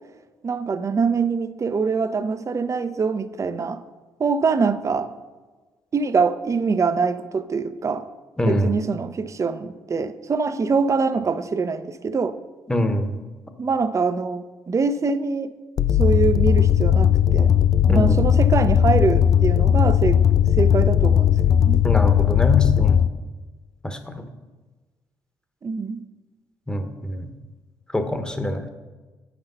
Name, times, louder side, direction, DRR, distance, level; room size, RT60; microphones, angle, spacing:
voice 1, 0.4-3.8 4.2-5.1 5.9-8.1 8.4-12.4 13.6-15.5 16.0-17.5 17.8-20.2 20.6-21.8 25.6-26.0, right 5 dB, 40° right, 12 dB, 0.7 m, -24 dB
voice 2, 8.4-8.7 12.7-13.1 17.9-18.3 21.8-23.0 23.8-24.3 26.7-27.3 27.9-28.7, left 1 dB, 10° left, 7 dB, 1.1 m, -24 dB
sound 1, 15.8-23.1, left 9 dB, 45° left, 0.4 m, -17 dB
8.6 x 6.0 x 5.6 m, 1.3 s
supercardioid pair, 65°, 8 cm